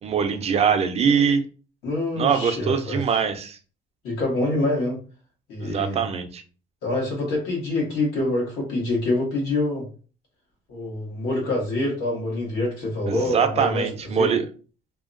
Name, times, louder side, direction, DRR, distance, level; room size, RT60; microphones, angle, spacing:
voice 1, 0.0-1.4 2.2-3.6 5.6-6.4 13.1-14.5, right 6 dB, 40° right, 8 dB, 0.4 m, -23 dB
voice 2, 1.8-3.0 4.0-5.0 5.5-6.0 6.8-9.9 10.7-14.3, left 2 dB, 90° left, -1 dB, 1.4 m, -26 dB
2.7 x 2.2 x 2.5 m, 0.37 s
cardioid pair, 110°, 17 cm